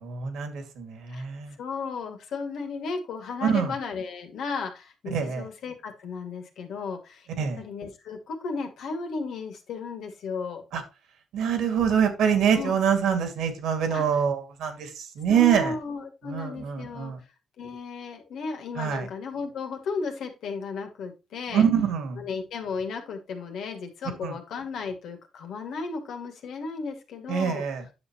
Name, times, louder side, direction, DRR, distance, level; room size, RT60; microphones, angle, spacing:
voice 1, 0.0-1.5 3.4-3.7 5.1-5.4 7.4-7.6 10.7-10.8 11.3-15.7 16.3-17.2 18.8-19.1 21.5-22.2 24.2-24.3 27.3-27.8, right 8 dB, 80° right, 2.3 m, -25 dB
voice 2, 1.6-7.3 7.6-10.6 12.5-12.8 13.9-14.2 15.3-17.1 17.6-21.6 22.2-27.6, left 4 dB, 75° left, 2.3 m, -34 dB
9.7 x 6.7 x 3.0 m
cardioid pair, 90°, 0 cm